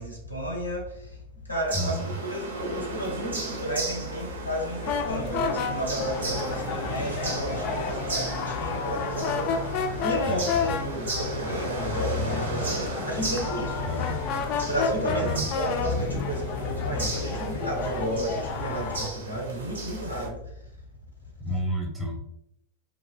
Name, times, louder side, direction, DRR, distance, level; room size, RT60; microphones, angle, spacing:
voice 1, 0.0-13.9 14.6-20.7, right 1 dB, 85° left, -1 dB, 0.6 m, -32 dB
voice 2, 1.7-2.1 10.2-10.5 13.8-14.2 15.1-15.5 21.4-22.2, left 1 dB, 5° right, -1 dB, 0.6 m, -30 dB
sound 1, 1.7-20.3, right 2 dB, 70° right, 0.4 m, -35 dB
sound 2, 4.8-19.1, left 5 dB, 45° left, 0.3 m, -30 dB
2.4 x 2.1 x 2.4 m, 0.76 s
figure-of-eight pair, 90°, 0 cm